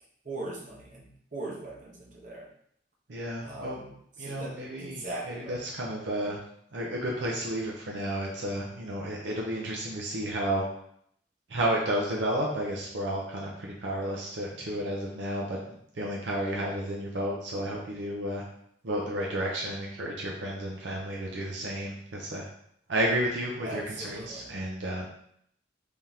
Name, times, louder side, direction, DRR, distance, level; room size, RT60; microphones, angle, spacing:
voice 1, 0.2-2.5 3.4-3.9 4.2-5.7 23.6-24.5, right 2 dB, 45° right, -3 dB, 1.0 m, -40 dB
voice 2, 3.1-3.8 4.2-6.4 6.7-10.6 11.5-15.6 15.9-18.4 18.8-22.4 22.9-25.1, right 1 dB, 75° right, -2 dB, 0.6 m, -32 dB
3.6 x 2.8 x 3.6 m, 0.69 s
head